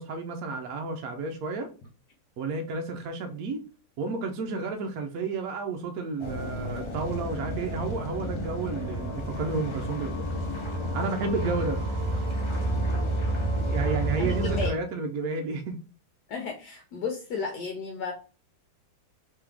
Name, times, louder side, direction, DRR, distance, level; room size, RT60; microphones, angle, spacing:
voice 1, 0.0-1.7 2.4-3.6 4.0-10.3 10.9-11.8 13.7-15.8, right 4 dB, 65° right, 1.0 m, -31 dB
sound 1, 6.2-14.7, right 1 dB, 20° left, 0.8 m, -30 dB
voice 2, 14.2-14.8 16.3-18.1, left 5 dB, 70° left, 1.3 m, -33 dB
3.5 x 3.2 x 3.4 m
omnidirectional pair, 1.9 m